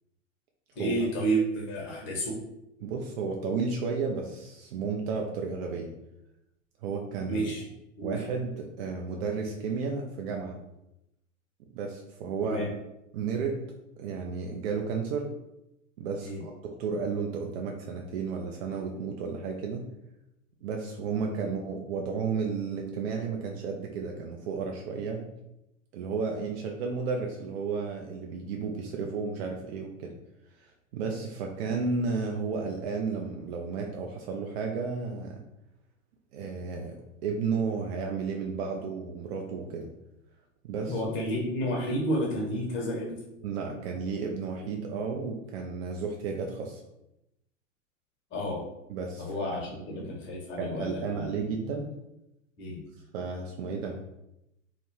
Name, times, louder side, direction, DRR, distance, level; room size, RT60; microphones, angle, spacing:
voice 1, 0.7-2.4 7.3-7.6 8.0-8.2 12.4-12.7 16.2-16.4 21.4-21.5 40.9-43.2 48.3-48.6 49.2-51.3 52.6-52.8, right 1 dB, 30° left, -2 dB, 0.9 m, -31 dB
voice 2, 2.8-5.9 6.8-7.5 8.0-10.6 11.7-12.7 13.1-13.6 14.0-15.3 16.0-16.5 16.8-19.8 20.6-25.3 25.9-30.1 30.6-35.4 36.3-37.0 37.2-39.9 40.6-41.0 43.4-46.8 48.9-49.3 49.8-50.1 50.6-51.9 53.1-54.0, right 5 dB, 50° right, 1 dB, 0.4 m, -33 dB
2.2 x 2.1 x 3.0 m, 0.87 s
figure-of-eight pair, 95°, 40 cm